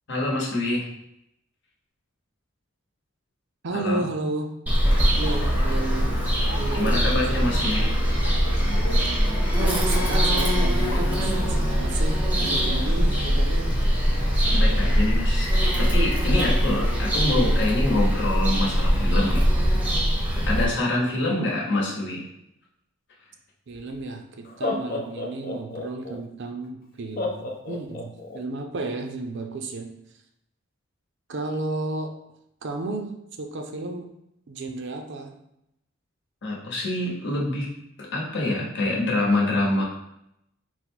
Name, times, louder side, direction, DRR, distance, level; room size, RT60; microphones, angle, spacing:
voice 1, 0.1-0.9 3.7-4.0 6.7-7.9 14.5-15.5 15.8-19.4 19.7-20.0 20.5-22.3 36.4-37.7 38.0-39.8, left 2 dB, 60° left, -3 dB, 1.1 m, -26 dB
voice 2, 3.6-4.5 5.2-6.2 6.6-7.6 9.6-13.8 21.1-21.7 23.7-30.0 31.3-32.1 32.6-34.1 34.5-35.3, right 2 dB, 60° right, 5 dB, 0.5 m, -33 dB
Bird vocalization bird call bird song, 4.7-20.7, equal, 10° right, 0.7 m, -22 dB
sound 1, 4.9-15.0, left 1 dB, 80° left, 0.8 m, -35 dB
Laughter, 23.7-23.8 24.4-26.2 27.2-28.4, left 2 dB, 45° left, 0.5 m, -30 dB
4.0 x 2.1 x 4.5 m, 0.81 s
head